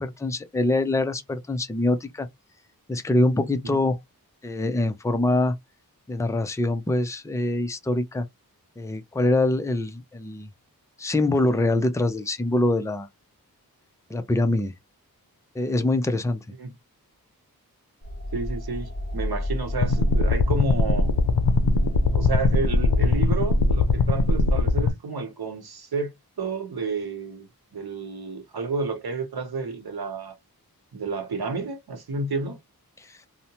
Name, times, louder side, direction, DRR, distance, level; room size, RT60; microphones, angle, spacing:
voice 1, 0.0-2.3 2.9-4.0 4.4-5.6 6.1-8.3 8.8-10.5 11.0-13.1 14.1-14.7 15.6-16.4, left 2 dB, 10° left, 0.4 m, -24 dB
sound 1, 18.0-23.2, equal, 35° left, 1.3 m, -33 dB
voice 2, 18.3-21.1 22.1-30.4 30.9-32.6, right 4 dB, 85° right, 0.8 m, -31 dB
sound 2, 19.8-24.9, left 3 dB, 85° left, 0.5 m, -21 dB
2.7 x 2.1 x 2.8 m
wide cardioid pair, 65°, 36 cm